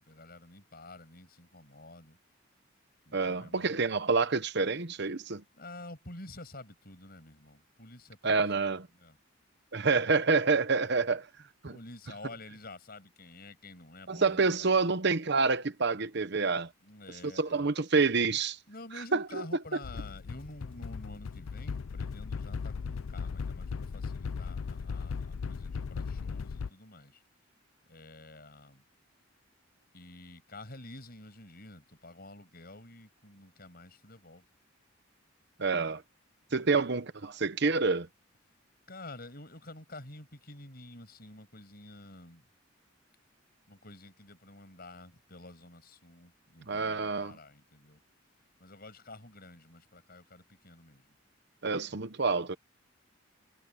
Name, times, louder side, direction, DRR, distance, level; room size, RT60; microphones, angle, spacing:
voice 1, 0.0-2.2 3.1-3.9 5.5-8.4 8.9-9.2 11.6-14.8 16.8-17.7 18.7-27.2 27.9-28.8 29.9-34.4 36.5-36.8 38.9-42.5 43.7-48.0 48.6-51.2, left 2 dB, 50° left, 6.6 m, -49 dB
voice 2, 3.1-5.4 8.2-8.9 9.7-11.3 11.6-11.7 14.1-16.7 17.4-18.6 19.1-19.4 35.6-36.0 36.5-38.1 46.7-47.4 51.6-52.6, right 4 dB, 55° right, 0.9 m, -28 dB
sound 1, 19.8-26.7, left 5 dB, 85° left, 0.5 m, -37 dB
head